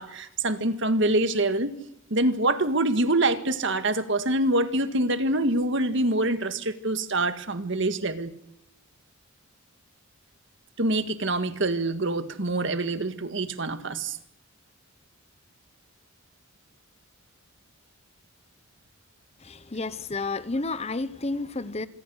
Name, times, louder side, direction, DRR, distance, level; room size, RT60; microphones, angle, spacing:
voice 1, 0.0-1.7 2.1-8.3 10.8-14.2, right 2 dB, 60° right, 1.8 m, -25 dB
voice 2, 19.4-21.9, left 3 dB, 30° left, 0.9 m, -31 dB
26.5 x 21.5 x 6.5 m
head